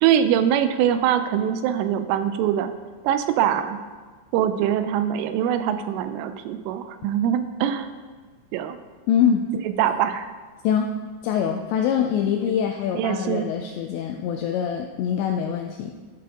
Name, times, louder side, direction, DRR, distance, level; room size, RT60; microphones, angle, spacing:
voice 1, 0.0-2.7 3.0-3.8 4.3-7.9 8.5-8.8 9.8-10.3 12.4-12.5 12.9-13.5, right 10 dB, 90° right, 10 dB, 3.1 m, -23 dB
voice 2, 9.1-9.5 10.6-15.9, left 8 dB, 85° left, 4 dB, 2.5 m, -24 dB
13.0 x 6.0 x 3.6 m, 1.4 s
omnidirectional pair, 5.5 m